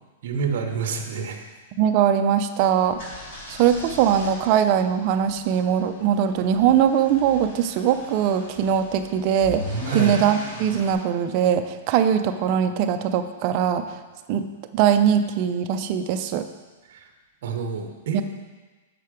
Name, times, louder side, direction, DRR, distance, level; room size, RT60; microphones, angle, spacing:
voice 1, 0.2-1.4 9.8-10.2 16.9-17.1 17.4-18.2, right 5 dB, 50° right, 4 dB, 0.8 m, -28 dB
voice 2, 1.8-3.0 3.6-9.6 9.9-13.9 14.3-14.4 14.7-16.4 18.1-18.2, right 9 dB, 30° right, 7 dB, 0.4 m, -21 dB
sound 1, 2.8-10.9, equal, 35° left, 2.4 m, -38 dB
6.6 x 5.8 x 4.9 m, 1.3 s
supercardioid pair, 180°, 0 cm